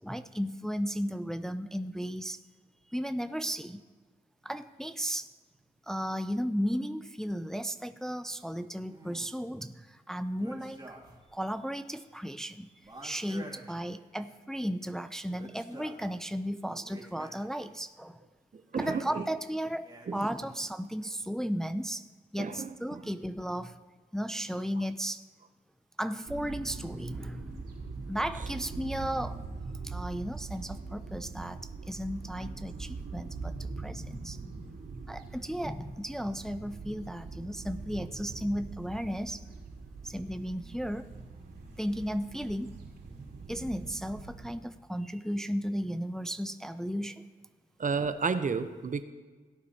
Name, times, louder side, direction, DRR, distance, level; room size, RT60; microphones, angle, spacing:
voice 1, 0.0-2.4 2.9-3.8 4.4-5.3 5.8-11.0 11.3-18.2 18.8-22.0 22.3-23.8 24.1-25.2 26.0-29.4 29.8-34.4 35.1-39.4 40.0-41.1 41.8-42.8 43.5-47.2, equal, 5° left, 11 dB, 0.5 m, -35 dB
sound 1, 8.9-9.4 10.4-11.3 11.6-11.7 12.8-14.3 15.2-16.1 16.7-17.7 18.8-19.3 19.8-20.6, right 1 dB, 25° right, 2.6 m, -50 dB
voice 2, 18.5-19.2 20.1-20.2 22.4-23.0 47.8-49.0, right 5 dB, 50° right, 11 dB, 0.8 m, -32 dB
sound 2, 26.3-44.5, right 4 dB, 70° right, 3.4 m, -42 dB
17.5 x 8.3 x 2.9 m, 1.4 s
supercardioid pair, 40°, 17 cm